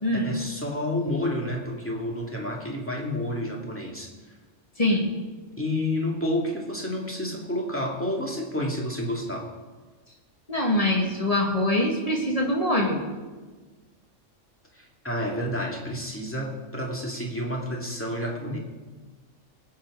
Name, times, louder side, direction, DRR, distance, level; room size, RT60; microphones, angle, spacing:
voice 1, 0.1-4.1 5.6-9.5 14.7-18.6, left 1 dB, 10° left, -1 dB, 2.1 m, -30 dB
voice 2, 4.8-5.1 10.5-13.0, left 1 dB, 30° left, -1 dB, 2.1 m, -23 dB
20.0 x 8.1 x 4.8 m, 1.3 s
omnidirectional pair, 1.3 m